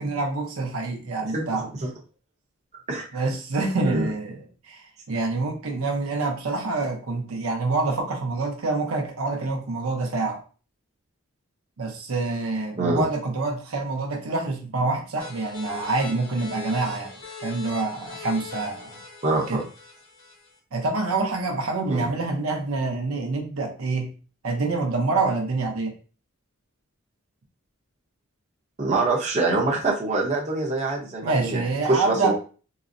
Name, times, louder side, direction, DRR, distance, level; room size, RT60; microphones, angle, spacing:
voice 1, 0.0-1.7 3.1-10.4 11.8-17.2 17.4-19.0 19.5-19.7 20.7-24.1 24.4-25.9 31.2-32.3, right 3 dB, 85° right, 2 dB, 0.7 m, -26 dB
voice 2, 2.9-3.2 3.8-4.1 12.8-13.0 19.2-19.6 21.9-22.0 28.8-32.3, right 2 dB, 35° right, -2 dB, 0.7 m, -24 dB
sound 1, 15.2-20.6, left 4 dB, 65° left, 1.6 m, -41 dB
3.8 x 2.0 x 2.5 m, 0.37 s
head